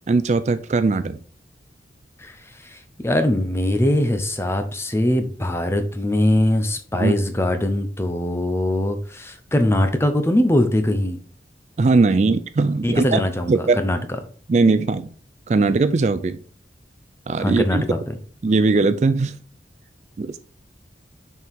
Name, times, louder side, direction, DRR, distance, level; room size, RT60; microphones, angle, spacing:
voice 1, 0.1-1.2 6.9-7.1 11.8-13.2 13.5-13.8 14.5-15.1 15.5-16.4 17.3-17.8 18.4-19.4 20.2-20.4, right 3 dB, 40° right, 12 dB, 0.3 m, -19 dB
voice 2, 2.2-11.2 12.2-12.4 12.8-14.0 17.4-18.1, left 1 dB, 15° left, 7 dB, 0.7 m, -22 dB
6.2 x 4.6 x 3.6 m, 0.43 s
head